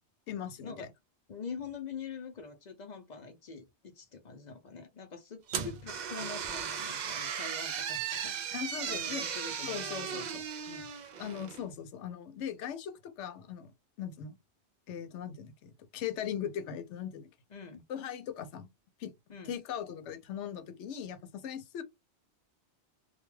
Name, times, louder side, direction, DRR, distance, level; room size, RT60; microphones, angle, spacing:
voice 1, 0.3-0.9 8.5-9.2 9.6-10.4 11.2-13.7 14.0-14.4 14.9-17.3 17.9-18.7 19.0-19.1 19.5-21.8, left 9 dB, 85° left, 0.9 m, -39 dB
voice 2, 1.3-10.3 10.7-10.9 17.5-17.8 19.3-19.6, left 5 dB, 55° left, 0.5 m, -45 dB
sound 1, 5.5-11.6, right 7 dB, 60° right, 0.4 m, -37 dB
2.3 x 2.2 x 3.1 m
omnidirectional pair, 1.2 m